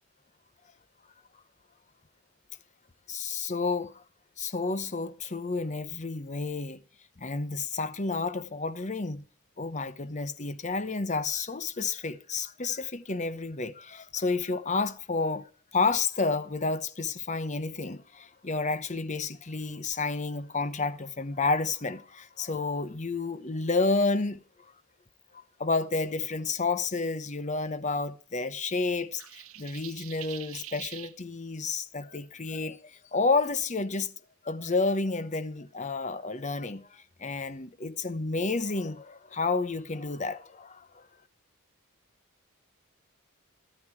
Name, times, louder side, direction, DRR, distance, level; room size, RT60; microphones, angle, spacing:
voice 1, 3.1-4.0 4.4-6.8 7.2-9.2 9.6-24.4 25.3-34.1 34.4-41.1, left 3 dB, 35° left, 0.9 m, -30 dB
sound 1, 29.2-31.1, right 13 dB, 70° right, 1.2 m, -44 dB
13.5 x 13.0 x 4.6 m
head